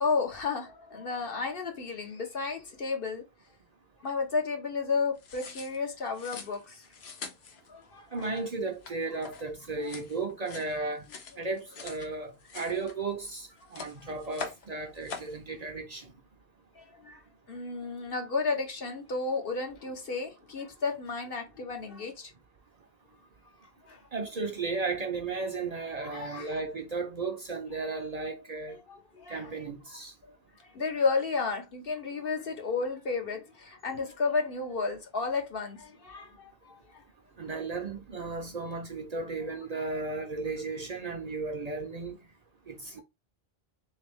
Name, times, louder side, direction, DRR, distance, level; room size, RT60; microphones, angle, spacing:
voice 1, 0.0-3.2 4.0-6.8 7.7-8.3 9.8-9.9 16.8-17.2 17.5-22.3 23.9-24.0 26.0-26.6 28.9-29.5 30.7-36.8, left 4 dB, 65° left, 1.2 m, -32 dB
sound 1, 5.2-12.1 12.4-13.3 13.6-14.7 15.0-15.4, left 5 dB, 85° left, 1.0 m, -44 dB
voice 2, 8.1-11.1 11.4-16.1 24.1-28.8 29.3-30.1 37.4-42.2 42.7-43.0, right 3 dB, 45° right, 0.6 m, -35 dB
3.4 x 3.1 x 3.5 m
omnidirectional pair, 1.0 m